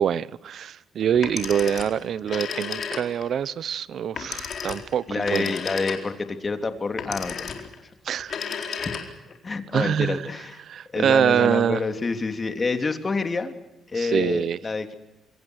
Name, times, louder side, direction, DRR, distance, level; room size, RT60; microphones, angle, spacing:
voice 1, 0.0-5.5 8.0-8.4 9.7-10.2 10.7-11.8 14.0-14.6, right 8 dB, 65° right, 19 dB, 0.9 m, -24 dB
Telephone, 1.1-3.3 4.2-6.3 7.0-7.8 8.2-9.4, left 6 dB, 55° left, 4.3 m, -33 dB
voice 2, 5.1-7.6 8.8-9.0 9.4-10.6 10.9-13.5 13.9-14.9, left 4 dB, 30° left, 7 dB, 3.2 m, -28 dB
27.5 x 25.5 x 6.5 m, 0.94 s
cardioid pair, 90°, 0 cm